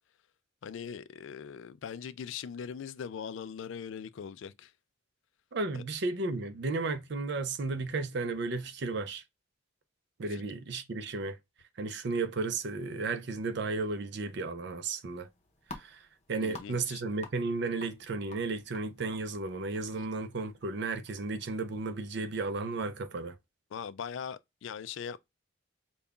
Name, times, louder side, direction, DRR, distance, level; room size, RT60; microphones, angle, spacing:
voice 1, 0.6-4.7 5.7-5.8 10.3-10.4 16.4-17.0 20.0-20.1 23.7-25.2, left 7 dB, 70° left, 0.3 m, -41 dB
voice 2, 5.5-9.2 10.2-11.4 11.8-15.3 15.7-16.0 16.3-23.3, right 3 dB, 55° right, 0.5 m, -34 dB
sound 1, 15.1-21.8, left 3 dB, 35° left, 0.7 m, -52 dB
5.3 x 2.2 x 2.3 m
head